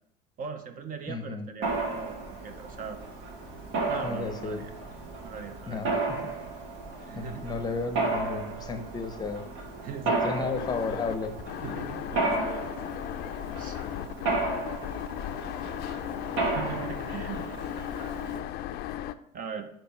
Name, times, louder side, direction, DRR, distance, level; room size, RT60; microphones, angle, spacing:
voice 1, 0.4-2.2 2.4-3.0 3.9-4.7 5.2-5.8 6.9-7.5 9.8-10.6 11.6-12.6 13.6-13.8 16.4-17.5 19.3-19.7, right 6 dB, 45° right, 8 dB, 0.6 m, -39 dB
voice 2, 1.1-1.5 4.0-4.6 5.7-6.3 7.1-9.4 10.0-11.4, left 4 dB, 20° left, 7 dB, 0.7 m, -33 dB
Mechanisms, 1.6-18.4, right 3 dB, 70° right, 1.6 m, -33 dB
sound 1, 10.5-19.1, left 12 dB, 50° left, 0.4 m, -36 dB
6.6 x 3.1 x 5.5 m, 0.75 s
cardioid pair, 135°, 20 cm